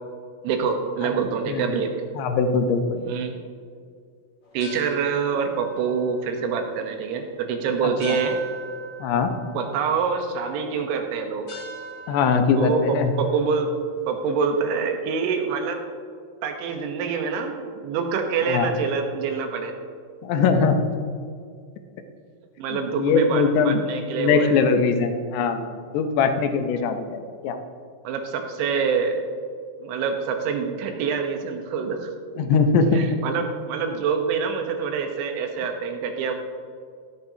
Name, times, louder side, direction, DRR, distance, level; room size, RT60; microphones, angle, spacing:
voice 1, 0.4-1.9 2.9-3.4 4.5-8.4 9.5-11.6 12.6-13.7 14.1-15.8 16.4-19.8 22.6-24.5 28.0-29.2 29.8-32.1 32.9-36.3, right 5 dB, 80° right, 4 dB, 3.4 m, -26 dB
voice 2, 2.2-3.0 8.0-8.2 9.0-9.3 12.1-13.1 18.5-18.7 20.2-20.9 22.7-23.8 24.2-25.7 25.9-27.0 27.4-27.6 32.4-33.0, left 5 dB, 75° left, 6 dB, 2.6 m, -21 dB
sound 1, 4.4-14.9, right 2 dB, 35° left, 1.2 m, -44 dB
14.5 x 13.0 x 2.8 m, 2.2 s
omnidirectional pair, 5.4 m